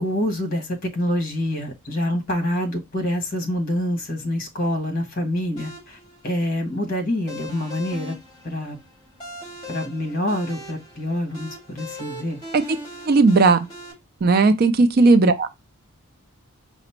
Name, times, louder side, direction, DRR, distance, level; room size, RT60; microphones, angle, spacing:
voice 1, 0.0-6.0 6.2-8.1 8.4-8.8 9.7-12.4, left 1 dB, 40° left, 1.3 m, -26 dB
sound 1, 5.6-13.9, left 1 dB, 25° left, 2.3 m, -40 dB
voice 2, 13.1-13.6 14.2-15.5, right 3 dB, 45° right, 0.4 m, -15 dB
4.9 x 2.1 x 4.3 m
head